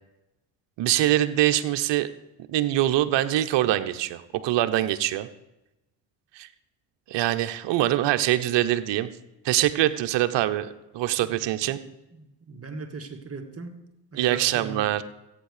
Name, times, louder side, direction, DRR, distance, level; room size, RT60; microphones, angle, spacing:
voice 1, 0.8-2.1 2.5-5.3 6.3-6.5 7.1-9.1 9.4-10.7 10.9-11.8 14.2-15.0, right 14 dB, 65° right, 1.0 m, -24 dB
voice 2, 12.1-15.0, right 3 dB, 30° right, 2.1 m, -39 dB
14.0 x 8.5 x 6.7 m
supercardioid pair, 70°, 47 cm